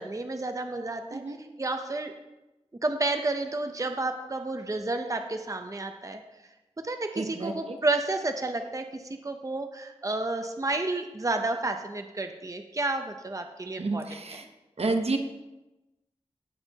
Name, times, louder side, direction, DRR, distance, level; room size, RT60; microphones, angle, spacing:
voice 1, 0.0-1.2 1.6-2.1 2.8-6.2 6.8-14.0, right 2 dB, 30° right, 6 dB, 0.7 m, -31 dB
voice 2, 7.2-7.8 13.8-14.5 14.8-15.2, right 3 dB, 65° right, 5 dB, 0.9 m, -30 dB
16.0 x 6.7 x 2.9 m, 1.0 s
wide cardioid pair, 60°, 11 cm